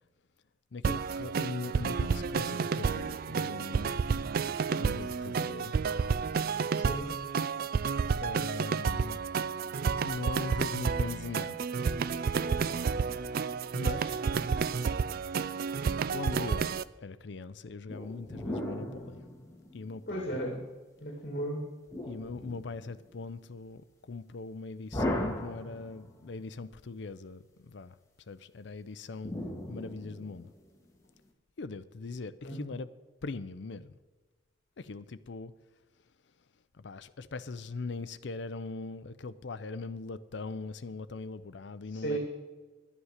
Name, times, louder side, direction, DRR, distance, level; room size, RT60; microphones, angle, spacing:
voice 1, 0.7-4.0 4.8-5.7 8.2-9.2 10.0-11.6 12.4-12.8 13.8-14.2 16.1-19.2 19.7-20.4 22.1-28.0 28.3-29.3 29.7-30.5 31.6-32.9 33.2-34.0 34.8-35.5 36.7-42.2, left 3 dB, 65° left, 0.5 m, -40 dB
sound 1, 0.8-16.8, right 5 dB, 50° right, 0.3 m, -30 dB
voice 2, 6.7-7.1 20.1-20.7 21.0-21.7 32.4-32.6 41.9-42.2, right 1 dB, 50° left, 2.0 m, -35 dB
sound 2, 17.9-20.2 21.9-23.1 24.9-26.3 29.2-30.7, left 1 dB, 15° left, 1.6 m, -37 dB
11.0 x 9.9 x 6.5 m
head